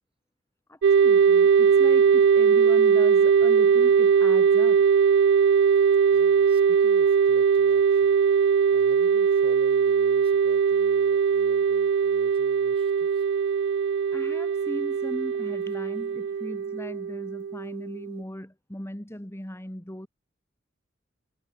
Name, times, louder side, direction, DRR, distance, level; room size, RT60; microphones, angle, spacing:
voice 1, 0.7-4.9 14.1-20.1, equal, 15° left, 2.2 m, -38 dB
sound 1, 0.8-18.2, right 6 dB, 65° right, 0.3 m, -20 dB
voice 2, 5.6-8.1 8.7-13.3, right 1 dB, 30° right, 4.2 m, -50 dB
head